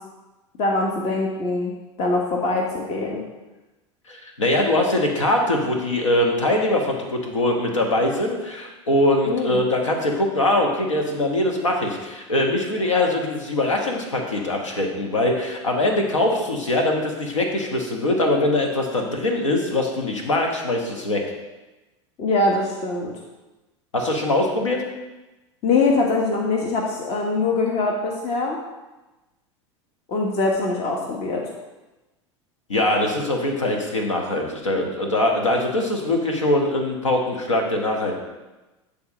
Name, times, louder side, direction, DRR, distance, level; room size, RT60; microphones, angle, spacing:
voice 1, 0.6-1.7 2.0-3.2 9.2-9.6 22.2-23.1 25.6-28.6 30.1-31.4, left 3 dB, 40° left, -1 dB, 1.2 m, -23 dB
voice 2, 4.1-21.2 23.9-24.8 32.7-38.2, left 1 dB, 90° left, 2 dB, 1.3 m, -22 dB
9.5 x 3.5 x 4.9 m, 1.1 s
hypercardioid pair, 85°, 16 cm